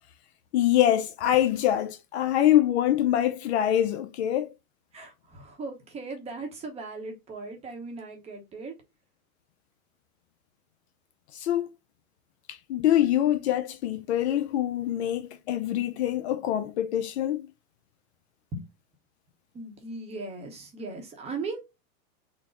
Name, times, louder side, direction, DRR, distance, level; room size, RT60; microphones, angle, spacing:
voice 1, 0.5-4.5 11.3-11.7 12.5-17.5, left 12 dB, 50° left, 0.5 m, -24 dB
voice 2, 4.9-8.7 18.5-18.7 19.5-21.6, right 3 dB, 15° right, 0.7 m, -38 dB
3.9 x 2.0 x 3.6 m
hypercardioid pair, 140°, 42 cm